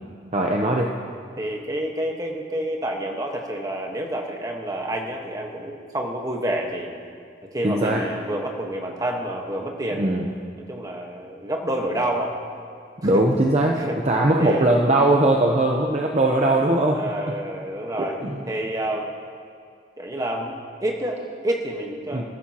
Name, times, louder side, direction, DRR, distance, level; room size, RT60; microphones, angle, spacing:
voice 1, 0.3-0.9 7.6-8.0 9.9-10.2 13.0-17.0 18.0-18.4 22.1-22.2, right 1 dB, 35° right, 0 dB, 0.8 m, -20 dB
voice 2, 1.4-6.9 7.5-10.3 10.7-12.4 13.1-13.2 13.8-14.0 14.4-14.7 16.9-18.2 18.5-19.1 20.0-22.2, right 1 dB, 20° right, 1 dB, 1.3 m, -28 dB
20.0 x 14.5 x 2.9 m, 2.3 s
head